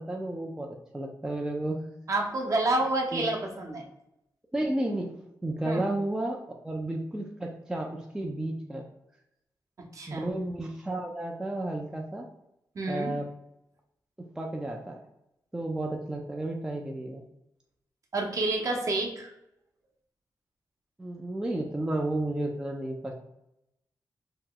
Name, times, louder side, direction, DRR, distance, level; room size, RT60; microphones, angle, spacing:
voice 1, 0.0-1.8 3.1-3.2 4.5-5.1 5.4-8.9 10.1-12.3 12.9-13.3 14.4-15.0 15.5-17.2 21.0-23.1, right 1 dB, 10° right, 0 dB, 0.3 m, -32 dB
voice 2, 2.1-3.8 5.6-5.8 9.9-10.3 12.7-13.1 18.1-19.3, right 2 dB, 50° right, 0 dB, 0.7 m, -29 dB
2.8 x 2.2 x 3.6 m, 0.85 s
wide cardioid pair, 120°, 7 cm